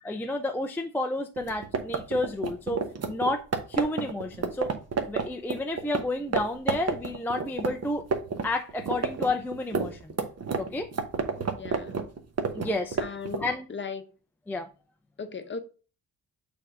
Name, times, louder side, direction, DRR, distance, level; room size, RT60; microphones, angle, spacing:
voice 1, 0.0-4.8 5.1-8.1 8.4-10.1 10.6-10.9 12.5-13.0 13.4-13.7 14.5-14.7, left 2 dB, 5° left, 0.4 m, -31 dB
sound 1, 1.4-6.0 6.3-6.4 6.7-8.4 8.7-13.5, right 5 dB, 40° right, 1.1 m, -29 dB
voice 2, 11.4-12.0 13.0-14.0 15.2-15.6, left 5 dB, 30° left, 0.8 m, -37 dB
6.7 x 3.4 x 4.9 m
wide cardioid pair, 135°, 38 cm